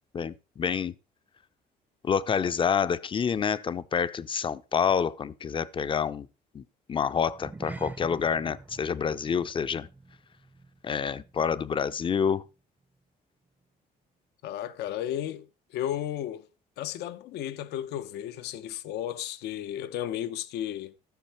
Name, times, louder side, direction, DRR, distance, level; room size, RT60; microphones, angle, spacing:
voice 1, 0.1-0.9 2.0-6.3 6.5-6.6 6.9-9.9 10.8-12.4, left 7 dB, 30° left, 0.6 m, -28 dB
sound 1, 7.3-11.9 12.2-12.5 13.0-13.1, right 2 dB, 10° right, 0.7 m, -45 dB
voice 2, 14.4-15.5 15.7-16.5 16.8-20.9, left 11 dB, 80° left, 0.8 m, -34 dB
14.0 x 6.5 x 4.3 m
cardioid pair, 110°, 17 cm